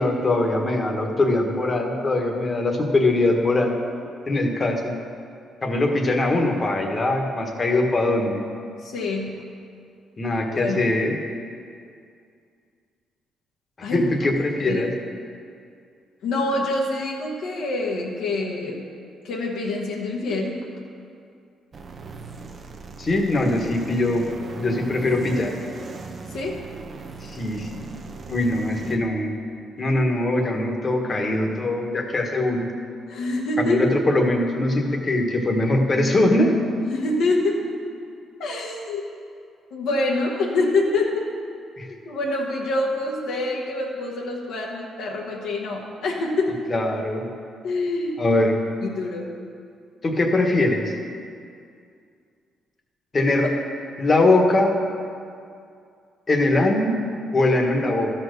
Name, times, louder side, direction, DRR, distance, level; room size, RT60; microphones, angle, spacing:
voice 1, 0.0-3.7 4.3-4.9 5.6-8.4 10.2-11.1 13.9-14.9 23.0-24.3 24.5-25.5 27.2-27.8 28.3-29.3 29.8-32.7 33.6-36.5 41.8-41.9 46.7-47.3 48.2-48.5 50.0-51.0 53.1-53.5 54.0-54.7 56.3-56.9 57.3-58.1, left 2 dB, 35° left, 2 dB, 1.3 m, -21 dB
voice 2, 8.8-9.3 10.5-10.8 13.8-14.1 14.7-14.8 16.2-18.8 19.2-20.5 26.3-26.6 33.1-33.8 36.9-37.6 38.4-39.0 39.7-41.2 41.9-46.5 47.6-48.2 48.8-49.3, left 2 dB, 85° left, -3 dB, 1.3 m, -25 dB
sound 1, 21.7-29.0, right 4 dB, 45° right, 0.8 m, -38 dB
12.5 x 4.4 x 6.6 m, 2.4 s
cardioid pair, 90°, 0 cm